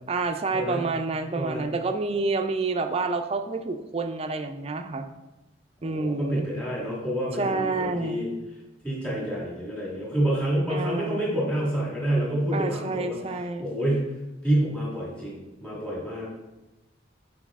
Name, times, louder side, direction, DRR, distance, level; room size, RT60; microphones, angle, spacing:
voice 1, 0.1-5.1 5.8-6.4 7.4-8.3 10.7-11.3 12.5-13.7, right 3 dB, 30° right, 7 dB, 0.4 m, -28 dB
voice 2, 5.8-8.3 8.8-13.2 13.6-14.1 14.4-16.3, right 1 dB, 5° left, -7 dB, 1.8 m, -28 dB
5.9 x 4.7 x 3.5 m, 1.0 s
head